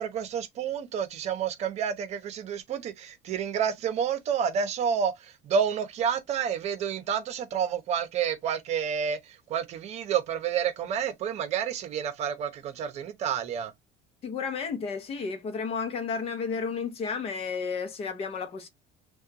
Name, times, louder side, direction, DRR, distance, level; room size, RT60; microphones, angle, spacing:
voice 1, 0.0-13.7, right 7 dB, 40° right, 0.8 m, -29 dB
voice 2, 14.2-18.7, left 5 dB, 35° left, 0.8 m, -32 dB
6.3 x 2.4 x 2.9 m
cardioid pair, 170°, 17 cm